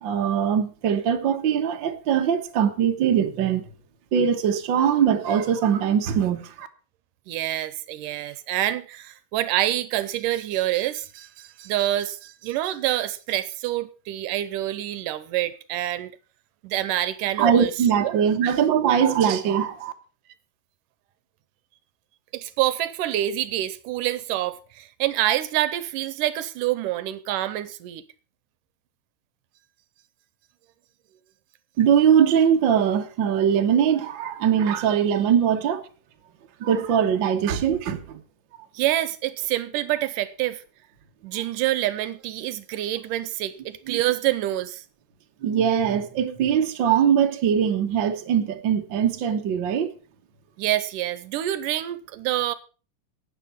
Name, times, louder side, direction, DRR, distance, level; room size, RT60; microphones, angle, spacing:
voice 1, 0.0-3.6 4.1-6.7 17.4-19.9 31.8-35.8 36.6-38.2 43.9-44.0 45.4-49.9, right 8 dB, 55° right, 1.4 m, -21 dB
voice 2, 7.3-16.1 16.6-17.7 18.0-18.1 18.4-18.5 22.3-28.0 38.7-40.6 41.2-44.8 50.6-52.5, right 14 dB, 80° right, 2.3 m, -27 dB
12.0 x 9.2 x 5.7 m
omnidirectional pair, 3.9 m